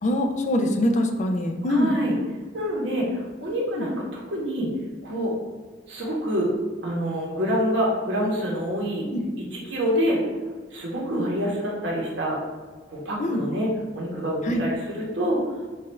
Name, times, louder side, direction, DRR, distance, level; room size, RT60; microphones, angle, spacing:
voice 1, 0.0-2.0 3.7-3.9 9.1-9.2 13.2-13.5 14.4-14.6, left 1 dB, 40° left, 4 dB, 0.4 m, -23 dB
voice 2, 1.7-2.1 2.5-4.7 5.0-5.3 5.9-6.5 6.8-9.0 9.5-10.2 10.7-12.4 12.9-15.4, equal, 70° right, -3 dB, 1.2 m, -26 dB
5.6 x 2.5 x 3.2 m, 1.4 s
head